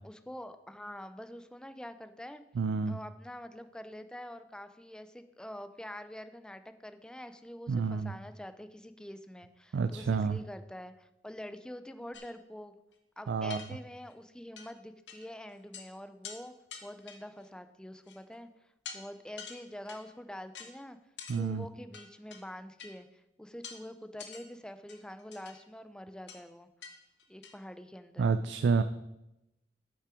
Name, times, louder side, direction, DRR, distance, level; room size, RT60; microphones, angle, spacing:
voice 1, 0.0-2.4 2.9-12.7 13.2-16.5 16.8-18.5 18.9-21.0 21.3-26.7 27.3-28.3, left 1 dB, 5° left, 10 dB, 0.4 m, -46 dB
voice 2, 2.6-3.0 7.7-8.1 9.7-10.4 13.3-13.6 21.3-21.6 28.2-28.8, right 5 dB, 85° right, 11 dB, 0.4 m, -29 dB
sound 1, 12.1-12.3 12.9-13.0 13.5-14.1 14.6-14.7 15.1-15.3 15.5-15.9 16.2-16.4 16.7-17.5 18.1-18.4 18.9-19.0 19.4-20.1 20.5-20.7 21.2-21.4 21.9-22.4 22.8-22.9 23.6-23.8 24.2-24.4 24.9-25.6 26.3-26.4 26.8-26.9 27.2-27.6, left 6 dB, 80° left, 1.0 m, -46 dB
8.5 x 5.5 x 5.0 m, 0.90 s
head